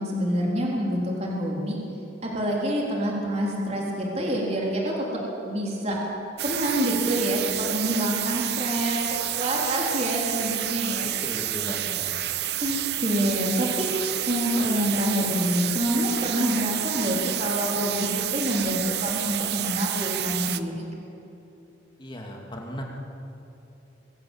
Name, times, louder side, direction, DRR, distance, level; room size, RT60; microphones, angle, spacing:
voice 1, 0.0-1.8 2.2-6.0 6.4-9.0 9.3-11.1 12.6-13.9 14.3-20.9, equal, 35° right, -3 dB, 3.9 m, -27 dB
sound 1, 6.4-20.6, right 13 dB, 60° right, 0.7 m, -29 dB
voice 2, 11.0-12.1 22.0-22.8, equal, 25° left, 0 dB, 2.7 m, -36 dB
24.0 x 15.5 x 7.5 m, 2.8 s
head